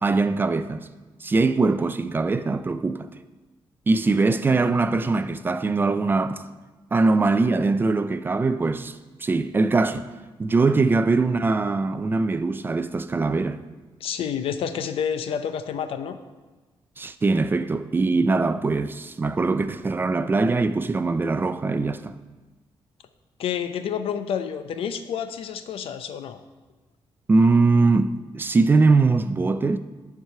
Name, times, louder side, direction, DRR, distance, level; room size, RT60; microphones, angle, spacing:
voice 1, 0.0-0.9 1.2-3.1 3.9-6.4 6.9-10.1 10.4-13.6 17.0-22.1 27.3-29.8, right 3 dB, 20° right, 0.4 m, -22 dB
voice 2, 14.0-16.2 23.4-26.4, left 8 dB, 80° left, 0.6 m, -29 dB
11.5 x 4.7 x 5.5 m
cardioid pair, 145°, 9 cm